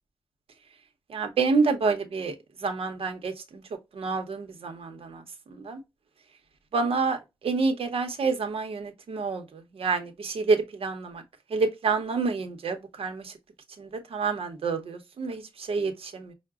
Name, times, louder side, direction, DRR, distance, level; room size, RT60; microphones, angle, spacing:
voice 1, 1.1-2.3 2.6-3.6 3.9-5.8 6.7-11.2 11.5-13.3 13.8-16.3, right 4 dB, 85° right, 0.9 m, -28 dB
5.7 x 2.2 x 2.4 m
wide cardioid pair, 155°, 9 cm